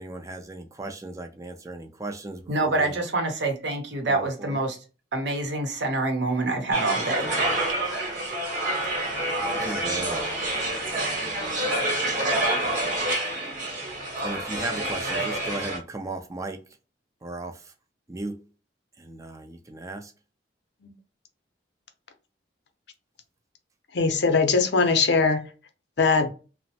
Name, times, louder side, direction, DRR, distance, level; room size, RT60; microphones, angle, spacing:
voice 1, 0.0-2.9 4.1-4.6 9.5-10.3 14.2-16.6 17.2-17.7 18.1-18.4 19.0-20.1, right 2 dB, 15° right, 0.4 m, -36 dB
voice 2, 2.5-4.8 5.1-7.3, right 2 dB, 70° right, 0.7 m, -26 dB
sound 1, 6.7-15.8, right 1 dB, 40° right, 0.9 m, -27 dB
voice 3, 23.9-25.5 26.0-26.3, left 4 dB, 65° left, 0.6 m, -21 dB
3.0 x 2.0 x 2.7 m
head